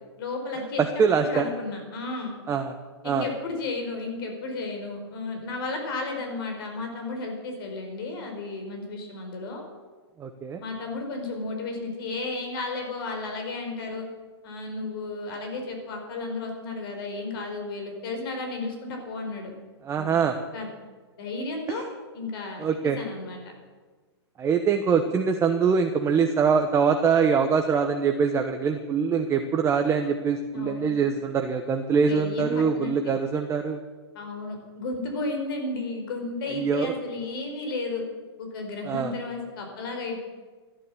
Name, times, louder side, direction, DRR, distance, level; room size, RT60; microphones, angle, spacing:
voice 1, 0.2-0.8 1.1-2.3 3.0-9.6 10.6-14.1 14.4-19.5 19.9-20.1 20.5-20.7 21.2-21.8 22.1-22.7 23.0-23.4 30.5-30.9 32.0-32.9 34.1-38.0 38.4-40.2, left 3 dB, 55° left, 3 dB, 5.0 m, -33 dB
voice 2, 0.8-1.5 2.5-2.7 3.0-3.3 10.2-10.6 19.8-20.3 21.7-21.8 22.6-23.0 24.4-33.8 36.5-36.9 38.8-39.1, right 6 dB, 20° right, 5 dB, 1.0 m, -23 dB
15.0 x 11.5 x 7.4 m, 1.4 s
hypercardioid pair, 125°, 14 cm